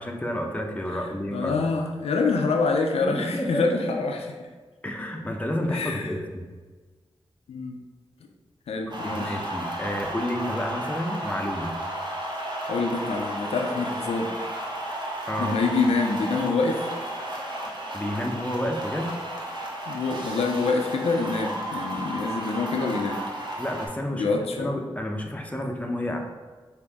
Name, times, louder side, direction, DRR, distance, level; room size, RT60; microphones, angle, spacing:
voice 1, 0.0-1.6 3.0-4.0 4.8-6.4 9.0-11.7 15.3-15.6 17.9-19.1 23.6-24.3 24.6-26.2, left 1 dB, 15° left, 2 dB, 0.7 m, -30 dB
voice 2, 1.3-4.4 5.7-6.1 7.5-7.8 8.7-9.4 12.7-14.3 15.4-16.9 19.9-23.2 24.1-24.8, left 4 dB, 90° left, 3 dB, 0.4 m, -26 dB
sound 1, 8.9-23.9, right 1 dB, 50° right, 1.0 m, -33 dB
5.1 x 2.6 x 3.4 m, 1.4 s
cardioid pair, 45°, 10 cm